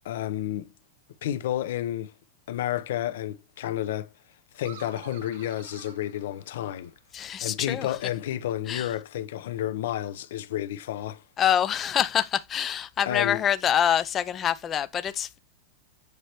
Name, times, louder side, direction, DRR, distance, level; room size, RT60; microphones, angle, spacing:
voice 1, 0.0-0.7 1.2-2.1 2.5-4.1 4.5-6.9 7.4-11.2 13.1-13.4, left 12 dB, 60° left, 0.7 m, -31 dB
Weird laugh, 4.6-7.1, right 8 dB, 50° right, 0.9 m, -49 dB
voice 2, 7.1-8.0 8.7-8.9 11.4-15.4, left 9 dB, 15° left, 0.4 m, -26 dB
8.1 x 3.2 x 4.4 m
supercardioid pair, 175°, 0 cm